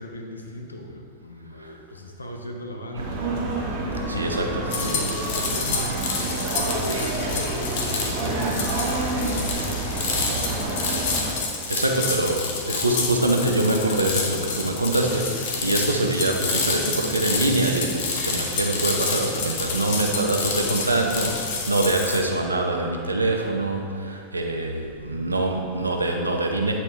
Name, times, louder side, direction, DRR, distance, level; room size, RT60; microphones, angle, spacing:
voice 1, 0.0-3.2 3.8-10.3, left 1 dB, 80° left, 3 dB, 0.6 m, -37 dB
sound 1, 3.0-11.3, right 2 dB, 45° right, 1.1 m, -28 dB
voice 2, 4.1-4.6 11.7-15.3 15.6-26.7, right 2 dB, 80° right, 2 dB, 0.6 m, -24 dB
sound 2, 4.7-22.2, left 4 dB, 50° left, 0.9 m, -28 dB
sound 3, 12.3-21.4, left 2 dB, 35° left, 1.0 m, -42 dB
8.4 x 4.3 x 3.1 m, 2.2 s
figure-of-eight pair, 90°, 0 cm